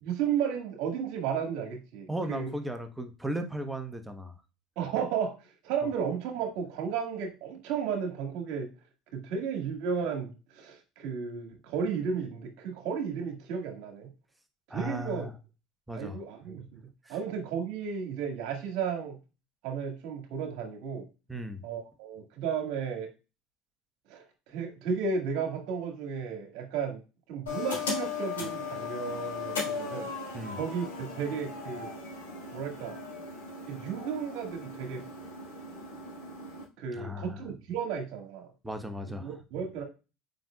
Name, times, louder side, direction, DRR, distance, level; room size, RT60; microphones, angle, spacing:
voice 1, 0.0-2.5 4.8-8.7 9.1-14.1 14.7-15.3 15.9-16.8 17.1-19.2 19.6-21.1 21.6-23.1 24.1-27.0 27.3-30.1 30.5-31.9 32.5-33.0 33.7-35.0 36.8-38.5 39.1-39.8, right 6 dB, 65° right, 4 dB, 1.9 m, -33 dB
voice 2, 2.1-4.3 14.7-15.3 15.9-16.2 17.1-17.2 21.3-21.6 30.3-30.6 36.9-37.4 38.6-39.3, right 1 dB, 10° right, 7 dB, 1.1 m, -36 dB
sound 1, 27.5-36.6, left 4 dB, 85° left, 3.9 m, -37 dB
7.7 x 5.4 x 2.4 m, 0.30 s
hypercardioid pair, 75°, 0 cm